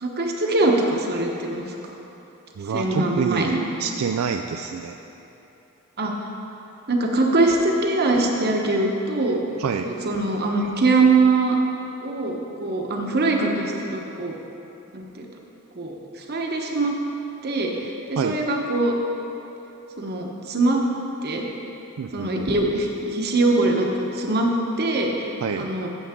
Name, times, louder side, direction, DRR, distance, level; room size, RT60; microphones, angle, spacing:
voice 1, 0.0-1.7 2.7-3.6 6.0-6.1 6.9-9.4 9.8-11.6 12.0-14.3 14.9-15.3 15.7-16.9 17.4-18.9 20.0-20.8 21.2-21.5 22.1-24.5 24.8-25.3 25.6-25.9, right 2 dB, 50° right, 1 dB, 1.1 m, -22 dB
voice 2, 2.6-5.0 9.6-9.9 18.2-18.4 22.0-22.5 25.4-25.9, right 6 dB, 75° right, 5 dB, 0.4 m, -27 dB
14.5 x 7.4 x 3.7 m, 3.0 s
head